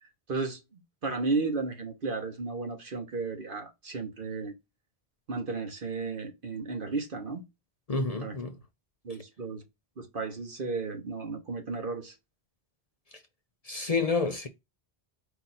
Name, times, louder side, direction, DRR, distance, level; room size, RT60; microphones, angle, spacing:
voice 1, 0.0-4.5 5.3-7.4 8.2-8.4 9.0-9.6 10.0-12.1, right 3 dB, 55° right, 1.3 m, -34 dB
voice 2, 7.9-8.5 13.6-14.5, left 4 dB, 45° left, 0.7 m, -29 dB
4.7 x 2.6 x 4.2 m
omnidirectional pair, 1.0 m